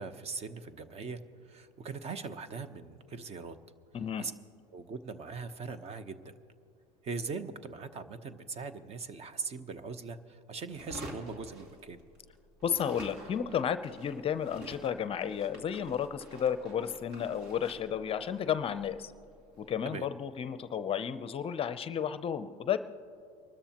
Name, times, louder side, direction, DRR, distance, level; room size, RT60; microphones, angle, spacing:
voice 1, 0.0-3.6 4.2-4.3 4.7-6.4 7.0-12.0 19.9-20.1, right 4 dB, 35° right, 12 dB, 0.9 m, -40 dB
voice 2, 3.9-4.3 12.6-19.1 19.6-22.8, left 8 dB, 30° left, 12 dB, 0.6 m, -32 dB
sound 1, 10.7-12.3 12.6-19.8, right 1 dB, 60° right, 2.5 m, -49 dB
24.5 x 13.0 x 2.9 m, 2.4 s
supercardioid pair, 100°, 18 cm